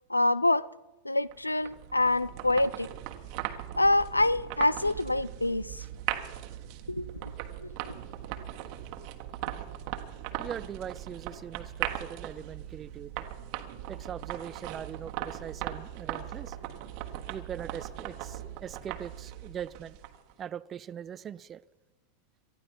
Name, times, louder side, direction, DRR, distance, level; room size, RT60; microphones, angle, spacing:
voice 1, 0.1-0.7 1.0-2.9 3.8-5.8 6.9-7.1 7.6-7.7, left 2 dB, 85° left, 0.4 m, -26 dB
sound 1, 1.3-20.3, right 13 dB, 45° right, 1.4 m, -39 dB
voice 2, 10.4-13.2 13.9-16.6 17.3-20.0 20.4-21.6, right 9 dB, 25° right, 0.5 m, -41 dB
19.5 x 13.5 x 5.4 m
figure-of-eight pair, 90°, 0 cm